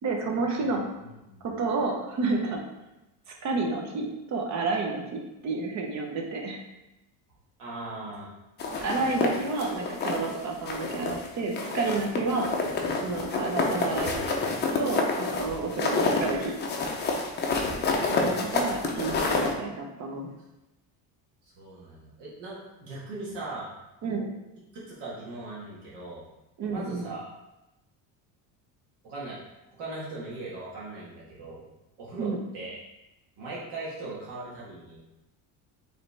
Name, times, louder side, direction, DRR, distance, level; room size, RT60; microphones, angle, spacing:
voice 1, 0.0-0.8 1.4-2.6 3.4-6.6 8.8-12.5 13.0-14.2 14.8-16.6 18.1-20.3 24.0-24.3 26.6-27.1 32.2-32.4, right 3 dB, 40° right, 1 dB, 0.8 m, -30 dB
voice 2, 1.0-1.4 7.6-8.3 15.7-15.8 17.7-18.9 21.6-23.7 24.7-26.2 26.7-27.3 29.0-29.4 29.7-31.6 32.0-32.8 33.4-35.0, right 2 dB, 65° right, -7 dB, 1.5 m, -39 dB
sound 1, 8.6-10.3 10.7-11.3 11.5-19.5, left 3 dB, 25° left, 0.5 m, -28 dB
4.8 x 3.3 x 3.3 m, 0.96 s
cardioid pair, 155°, 43 cm